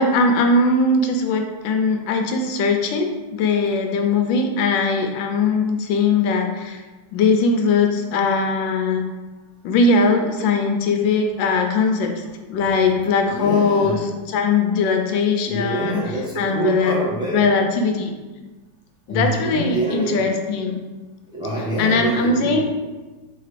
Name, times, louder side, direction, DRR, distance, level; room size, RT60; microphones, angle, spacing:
voice 1, 0.0-6.8 7.1-9.0 9.6-12.2 12.5-16.0 16.4-16.9 17.3-18.1 19.1-20.8 21.8-22.6, left 3 dB, 80° left, 4 dB, 1.3 m, -20 dB
voice 2, 13.3-14.0 15.5-17.5 19.1-20.3 21.3-22.6, right 1 dB, 5° right, -8 dB, 0.7 m, -25 dB
4.9 x 2.9 x 3.2 m, 1.2 s
omnidirectional pair, 2.1 m